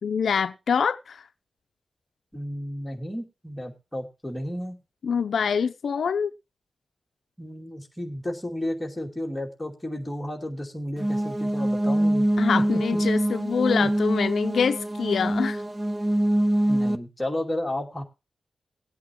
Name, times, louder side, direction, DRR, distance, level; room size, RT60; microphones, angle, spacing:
voice 1, 0.0-1.3 5.0-6.3 12.4-15.6, left 6 dB, 75° left, 0.6 m, -25 dB
voice 2, 2.3-4.8 7.4-12.3 12.5-13.0 13.8-13.9 16.7-18.0, left 1 dB, 5° left, 2.6 m, -32 dB
sound 1, 11.0-17.0, right 1 dB, 15° right, 0.6 m, -24 dB
19.5 x 8.4 x 3.0 m
wide cardioid pair, 175°, 0 cm